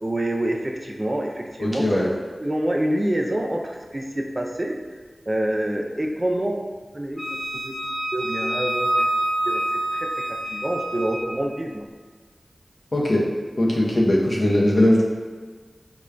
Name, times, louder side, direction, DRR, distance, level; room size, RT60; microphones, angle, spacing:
voice 1, 0.0-2.1 2.4-4.8 5.3-6.6 6.9-7.2 7.5-7.8 8.1-9.1 9.4-11.8, right 1 dB, 35° right, 1 dB, 0.3 m, -27 dB
voice 2, 1.6-2.1 12.9-13.2 13.6-15.0, left 1 dB, 60° left, -4 dB, 0.6 m, -19 dB
Wind instrument woodwind instrument, 7.2-11.2, right 1 dB, 45° left, 1.0 m, -26 dB
4.8 x 2.2 x 2.2 m, 1.4 s
wide cardioid pair, 50°, 0 cm